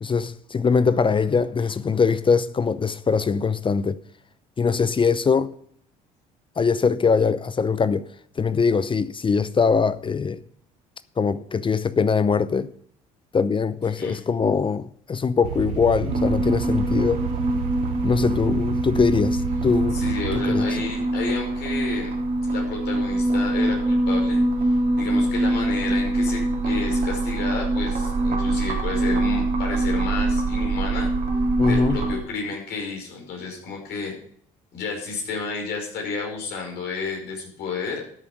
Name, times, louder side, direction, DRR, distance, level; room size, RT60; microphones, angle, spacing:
voice 1, 0.0-4.0 4.6-5.5 6.6-8.1 8.4-10.4 11.2-12.7 13.3-17.2 18.0-20.0 20.3-20.7 31.6-32.0, left 5 dB, 30° left, 0.7 m, -22 dB
sound 1, 15.4-20.4, right 9 dB, 85° right, 1.3 m, -31 dB
sound 2, 16.1-32.2, right 1 dB, 55° right, 3.0 m, -24 dB
voice 2, 19.9-22.1 22.5-24.7 25.0-31.1 31.6-34.1 34.7-38.0, left 4 dB, 70° left, 5.3 m, -31 dB
12.5 x 7.0 x 5.3 m
hypercardioid pair, 65°, 18 cm